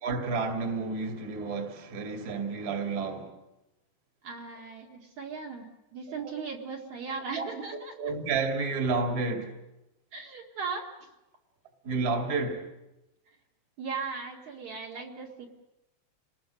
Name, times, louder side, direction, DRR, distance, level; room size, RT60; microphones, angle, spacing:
voice 1, 0.0-3.3 7.4-7.5 7.7-9.5 11.8-12.7, right 4 dB, 30° right, 2.6 m, -30 dB
voice 2, 4.2-8.1 10.1-11.1 13.3-13.4 13.8-15.5, right 5 dB, 55° right, 3.2 m, -38 dB
30.0 x 20.5 x 6.4 m
omnidirectional pair, 4.1 m